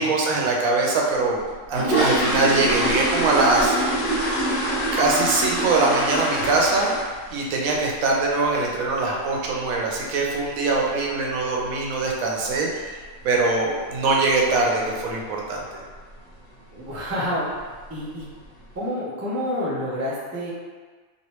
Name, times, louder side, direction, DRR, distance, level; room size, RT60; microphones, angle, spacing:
voice 1, 0.0-1.4 1.7-3.8 4.9-7.0 7.3-13.0 13.2-15.6, right 3 dB, 85° right, -2 dB, 1.1 m, -22 dB
sound 1, 1.4-7.3 7.6-7.9 8.2-8.3 8.7-8.8 9.2-9.4 9.7-9.8 10.4-10.5 10.7-10.9 11.4-11.7 12.0-12.1 12.5-12.7 13.0-13.1 13.5-13.6 14.2-14.6 14.9-15.2 15.6-15.7 16.1-16.2 16.9-17.1 17.5-18.0 18.4-18.5, right 1 dB, 65° left, 1.1 m, -25 dB
voice 2, 16.7-17.5 17.9-18.3 18.7-20.5, equal, 20° right, -7 dB, 0.4 m, -28 dB
3.0 x 2.9 x 2.9 m, 1.5 s
omnidirectional pair, 1.4 m